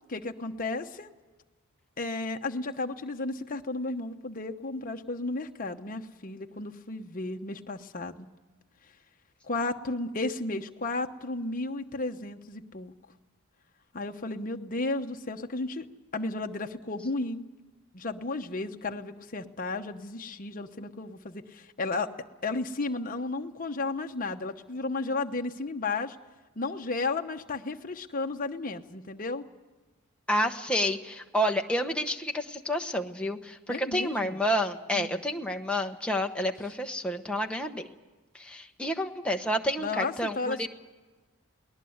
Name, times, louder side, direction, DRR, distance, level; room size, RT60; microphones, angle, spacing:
voice 1, 0.1-1.1 2.0-8.3 9.4-12.9 13.9-15.9 16.1-17.4 17.9-22.1 22.4-26.2 26.6-29.4 33.7-34.4 34.9-35.2 39.8-40.7, left 3 dB, 40° left, 5 dB, 1.0 m, -33 dB
voice 2, 30.3-37.9 38.3-40.7, equal, 5° left, 3 dB, 1.0 m, -29 dB
21.5 x 19.5 x 7.9 m, 1.2 s
head